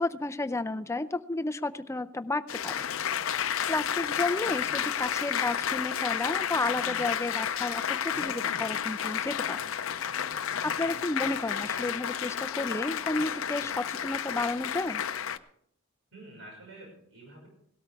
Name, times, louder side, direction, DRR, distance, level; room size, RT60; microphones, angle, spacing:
voice 1, 0.0-2.9 3.7-9.6 10.6-15.0, left 2 dB, 15° left, 10 dB, 0.5 m, -32 dB
Applause, 2.5-15.4, left 8 dB, 75° left, 0.6 m, -31 dB
voice 2, 16.1-17.5, right 1 dB, 65° right, -1 dB, 5.5 m, -49 dB
17.5 x 13.0 x 3.5 m, 0.67 s
head